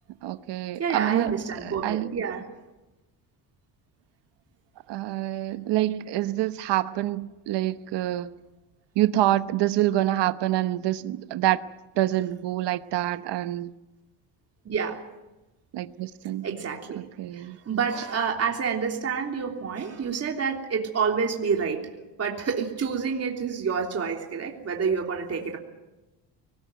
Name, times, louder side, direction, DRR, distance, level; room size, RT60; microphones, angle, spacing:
voice 1, 0.2-1.3 1.6-2.2 4.9-8.3 9.0-11.7 12.0-13.7 15.7-16.5 16.9-17.6, right 14 dB, 70° right, 1.1 m, -26 dB
voice 2, 0.8-2.4 14.6-15.0 16.4-17.0 17.3-21.9 22.2-25.6, right 6 dB, 35° right, 3.4 m, -28 dB
25.0 x 19.5 x 9.2 m
cardioid pair, 130°, 43 cm